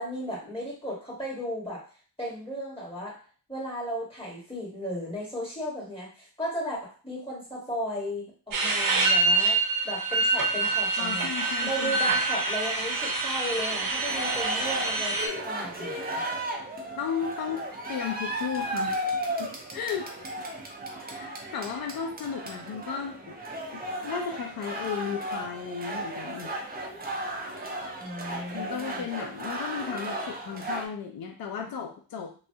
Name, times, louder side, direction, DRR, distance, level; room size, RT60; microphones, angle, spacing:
voice 1, 0.0-1.8 2.2-3.2 3.5-9.6 9.8-11.3 11.6-15.2 15.4-16.2 27.9-29.0, equal, 15° left, -5 dB, 1.4 m, -35 dB
sound 1, 8.5-15.3, right 3 dB, 65° right, 0.7 m, -26 dB
voice 2, 11.0-12.0 17.0-17.6 17.9-19.1 19.4-20.1 20.9-23.4 23.7-26.5 28.5-32.3, left 7 dB, 75° left, 3 dB, 0.5 m, -34 dB
sound 2, 13.7-30.8, right 1 dB, 25° right, 0.6 m, -35 dB
3.0 x 2.3 x 2.7 m, 0.39 s
wide cardioid pair, 105°, 37 cm